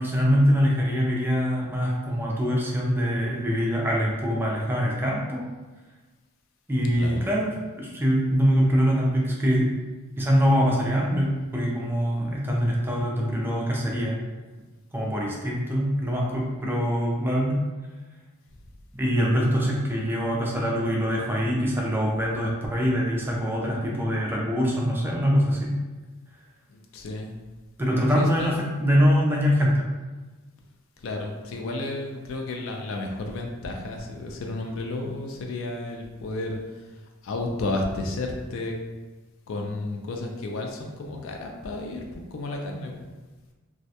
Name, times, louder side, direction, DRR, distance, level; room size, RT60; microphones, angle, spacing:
voice 1, 0.0-5.4 6.7-9.7 10.2-14.2 14.9-17.6 18.9-25.7 27.8-29.9, equal, 10° right, -3 dB, 0.4 m, -24 dB
voice 2, 7.0-7.3 26.9-27.3 28.2-28.5 31.0-36.6 37.2-38.7 39.5-43.0, left 2 dB, 65° left, 2 dB, 0.4 m, -32 dB
2.4 x 2.1 x 2.7 m, 1.2 s
head